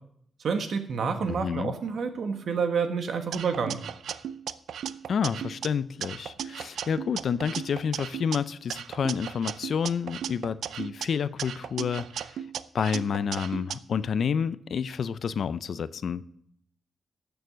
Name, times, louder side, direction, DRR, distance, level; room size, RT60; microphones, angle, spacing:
voice 1, 0.4-3.8, right 5 dB, 65° right, 7 dB, 1.4 m, -28 dB
voice 2, 1.3-1.7 5.1-12.4 12.7-16.2, left 7 dB, 60° left, 16 dB, 0.4 m, -29 dB
sound 1, 3.3-5.7 6.0-8.4 8.7-11.1 11.4-13.8, right 8 dB, 90° right, 0.4 m, -36 dB
13.0 x 7.0 x 6.2 m, 0.68 s
wide cardioid pair, 135°, 0 cm